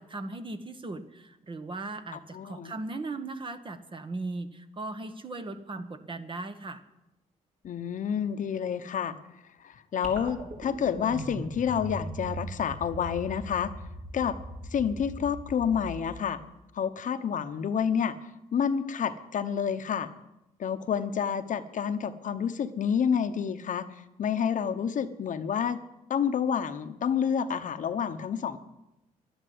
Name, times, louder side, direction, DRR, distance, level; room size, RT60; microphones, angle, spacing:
voice 1, 0.0-6.8, right 2 dB, 35° right, 9 dB, 1.4 m, -38 dB
voice 2, 2.1-2.7 7.6-9.1 9.6-13.7 14.1-14.4 14.7-16.4 16.7-18.1 18.5-20.1 20.6-23.8 24.2-25.8 26.1-28.6, left 7 dB, 60° left, 10 dB, 1.0 m, -29 dB
sound 1, 10.0-16.6, right 1 dB, 50° right, 4.3 m, -40 dB
11.5 x 11.5 x 9.4 m, 0.92 s
cardioid pair, 95°, 15 cm